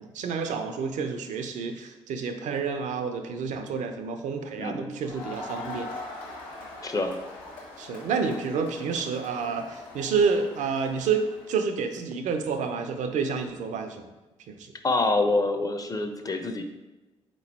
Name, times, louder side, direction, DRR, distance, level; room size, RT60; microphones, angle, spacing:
voice 1, 0.0-5.9 7.8-14.0 14.5-14.7, right 5 dB, 65° right, 7 dB, 0.5 m, -29 dB
voice 2, 4.6-5.0 6.8-7.2 14.8-16.6, left 2 dB, 25° left, 6 dB, 0.6 m, -26 dB
Crowd, 5.0-11.6, left 2 dB, 85° left, 1.1 m, -42 dB
3.9 x 3.0 x 4.1 m, 1.1 s
hypercardioid pair, 40°, 13 cm